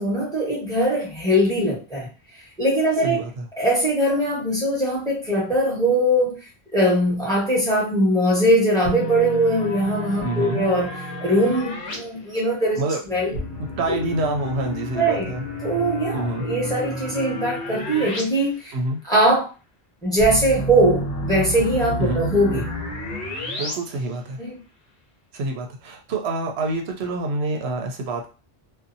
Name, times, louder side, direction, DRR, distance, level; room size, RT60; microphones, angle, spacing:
voice 1, 0.0-2.1 2.6-3.2 3.6-6.3 6.7-10.9 11.2-12.8 13.1-13.3 14.9-15.2 15.6-18.7 19.0-19.5 20.0-22.7 24.4-24.6, right 1 dB, 5° left, -5 dB, 1.1 m, -21 dB
voice 2, 3.0-3.5 10.2-10.6 12.8-15.4 16.1-16.4 18.7-19.0 22.0-22.2 23.6-24.4 25.3-28.3, right 2 dB, 80° right, 3 dB, 0.8 m, -27 dB
sound 1, 8.8-12.0 13.3-18.2 18.5-18.6 20.2-23.7, left 1 dB, 65° left, 1.0 m, -30 dB
2.6 x 2.3 x 2.6 m, 0.33 s
omnidirectional pair, 1.1 m